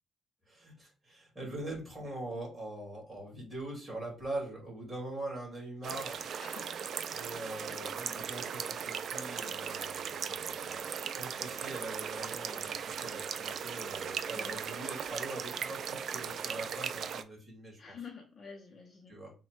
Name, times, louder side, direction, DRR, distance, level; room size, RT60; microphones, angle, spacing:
voice 1, 0.5-6.2 7.1-18.0 19.1-19.3, right 2 dB, 15° right, -3 dB, 1.9 m, -43 dB
sound 1, 5.8-17.2, right 7 dB, 50° right, 0.3 m, -38 dB
voice 2, 6.4-6.8 14.3-14.6 17.8-19.2, left 5 dB, 35° left, 1 dB, 0.6 m, -48 dB
4.0 x 2.2 x 4.5 m, 0.34 s
cardioid pair, 165°, 0 cm